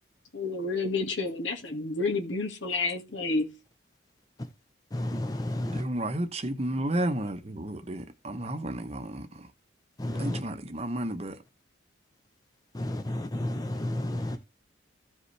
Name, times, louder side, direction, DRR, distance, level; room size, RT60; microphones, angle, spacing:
voice 1, 0.3-3.5, left 3 dB, 70° left, 1.9 m, -30 dB
voice 2, 4.9-5.8 10.0-10.4 12.7-14.4, left 1 dB, 20° left, 0.7 m, -31 dB
voice 3, 5.7-9.3 10.2-11.4, right 1 dB, 30° right, 0.9 m, -32 dB
15.0 x 5.2 x 3.3 m
head